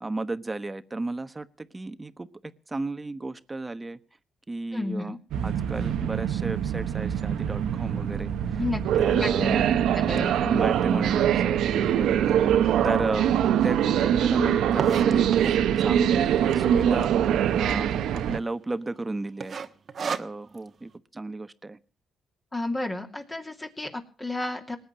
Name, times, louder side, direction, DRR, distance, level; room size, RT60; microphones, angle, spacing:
voice 1, 0.0-4.0 4.5-5.1 5.4-8.6 9.0-9.8 10.3-12.6 12.8-13.3 13.6-17.1 17.5-19.6 20.0-21.8, right 2 dB, 20° right, 12 dB, 1.2 m, -33 dB
voice 2, 4.7-5.2 8.6-8.8 9.2-9.6 9.9-10.3 22.5-24.8, left 2 dB, 20° left, 2 dB, 2.7 m, -31 dB
sound 1, 5.3-18.4, right 9 dB, 80° right, 1.2 m, -23 dB
sound 2, 12.3-12.4 13.0-13.1 13.2-13.3 13.6-15.7 16.4-16.8 17.1-17.2 17.4-17.5 18.1-18.4 18.7-19.0 19.4-20.7, right 6 dB, 45° right, 1.3 m, -33 dB
20.0 x 8.7 x 7.5 m, 0.39 s
cardioid pair, 90°, 0 cm